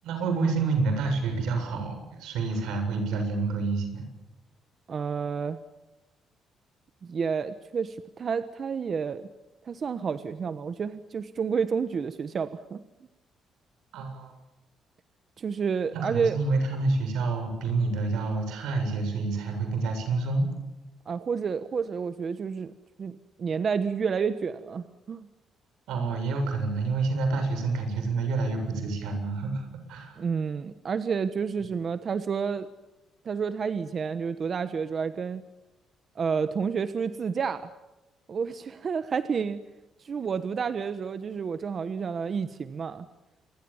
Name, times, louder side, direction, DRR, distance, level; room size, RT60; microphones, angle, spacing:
voice 1, 0.0-4.0 13.9-14.3 15.9-20.5 25.9-30.2, right 3 dB, 90° right, 6 dB, 7.7 m, -28 dB
voice 2, 4.9-5.6 7.0-9.3 9.6-12.8 15.4-16.4 21.1-22.7 23.0-25.3 30.2-32.7 33.2-35.4 36.1-37.7 38.3-39.6 40.0-43.1, right 6 dB, 45° right, 11 dB, 1.2 m, -30 dB
28.0 x 23.5 x 7.3 m, 1.0 s
cardioid pair, 110°, 0 cm